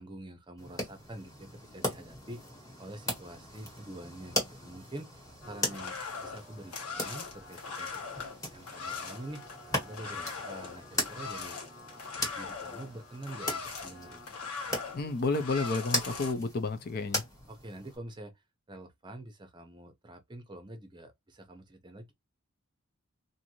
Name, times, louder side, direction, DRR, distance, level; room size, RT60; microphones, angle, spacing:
voice 1, 0.0-2.4 2.8-8.0 8.5-9.4 9.8-11.6 12.3-14.4 17.5-18.3 18.7-22.1, right 1 dB, 20° right, 0.6 m, -46 dB
sound 1, 0.6-18.0, equal, 15° left, 1.4 m, -39 dB
sound 2, 5.4-16.3, left 5 dB, 90° left, 1.1 m, -41 dB
voice 2, 14.9-17.3, left 3 dB, 45° left, 0.4 m, -31 dB
2.6 x 2.5 x 2.8 m
head